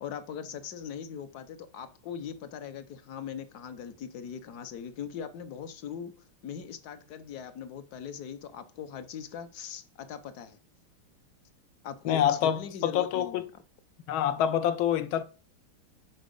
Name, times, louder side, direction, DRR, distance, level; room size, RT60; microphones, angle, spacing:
voice 1, 0.0-6.1 6.4-10.6 11.8-13.4, left 8 dB, 60° left, 1.1 m, -40 dB
voice 2, 12.1-13.5 14.1-15.2, left 10 dB, 75° left, 1.4 m, -26 dB
10.0 x 4.6 x 5.3 m
omnidirectional pair, 2.4 m